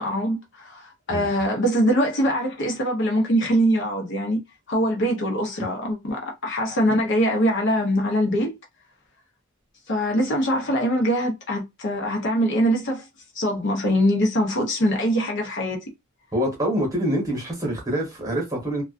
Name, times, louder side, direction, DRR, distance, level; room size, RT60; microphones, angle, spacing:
voice 1, 0.0-4.4 4.7-8.6 9.9-13.1 13.3-15.8, equal, 55° left, 0.7 m, -23 dB
voice 2, 16.3-18.8, equal, 15° right, 1.1 m, -25 dB
2.3 x 2.2 x 2.3 m
head